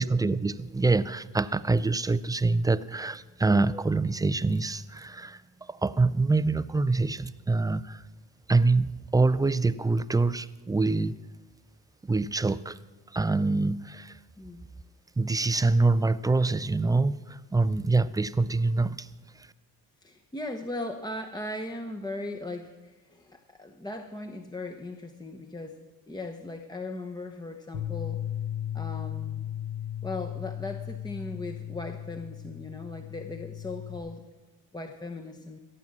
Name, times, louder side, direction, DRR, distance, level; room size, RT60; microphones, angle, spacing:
voice 1, 0.0-5.4 5.7-8.0 8.5-11.1 12.1-12.8 13.1-14.1 15.2-19.1, right 3 dB, 10° right, 15 dB, 0.4 m, -25 dB
voice 2, 14.4-14.7 20.0-25.8 26.1-28.2 28.7-29.5 30.0-34.2 34.7-35.6, left 2 dB, 10° left, 5 dB, 0.9 m, -38 dB
Bass guitar, 27.7-34.0, left 11 dB, 75° left, 3.6 m, -36 dB
16.5 x 7.4 x 7.2 m, 1.2 s
supercardioid pair, 65°, 44 cm